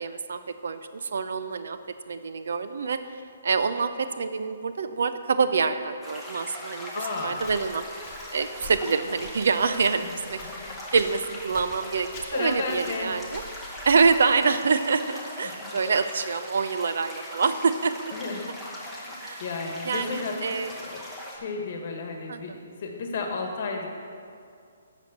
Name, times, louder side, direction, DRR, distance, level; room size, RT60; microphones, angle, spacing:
voice 1, 0.0-1.8 2.1-7.8 8.3-10.4 10.9-13.4 13.8-17.9 19.2-19.4 19.8-20.7 22.3-22.6, right 5 dB, 65° right, 10 dB, 0.6 m, -26 dB
sound 1, 6.0-21.4, left 1 dB, ahead, 0.9 m, -40 dB
voice 2, 6.9-7.4 10.0-10.1 10.4-10.8 12.3-13.1 15.4-15.7 18.1-18.5 18.8-19.1 19.4-21.0 21.3-23.9, left 4 dB, 40° left, 3 dB, 1.3 m, -33 dB
Walk footsteps, 7.4-14.4, left 3 dB, 15° left, 1.3 m, -46 dB
8.2 x 6.3 x 6.7 m, 2.4 s
hypercardioid pair, 175°, 0 cm